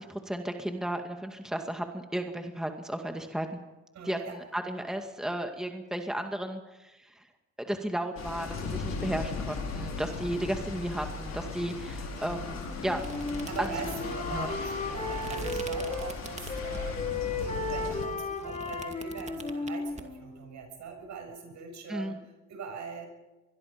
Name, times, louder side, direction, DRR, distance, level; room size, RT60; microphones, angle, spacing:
voice 1, 0.0-3.6 4.0-7.2 7.6-13.0 13.6-13.7 14.3-14.5 21.9-22.2, right 1 dB, ahead, 4 dB, 2.1 m, -34 dB
voice 2, 3.9-4.4 11.8-12.3 13.5-23.1, right 5 dB, 70° right, 4 dB, 7.2 m, -42 dB
sound 1, 8.2-18.1, left 4 dB, 60° left, 5.3 m, -37 dB
Wind instrument woodwind instrument, 12.6-16.2 16.5-20.5, left 3 dB, 25° left, 4.9 m, -35 dB
sound 2, 13.0-17.0 17.5-20.0, right 3 dB, 20° right, 2.3 m, -44 dB
24.5 x 22.0 x 5.3 m, 1.1 s
cardioid pair, 90°, 30 cm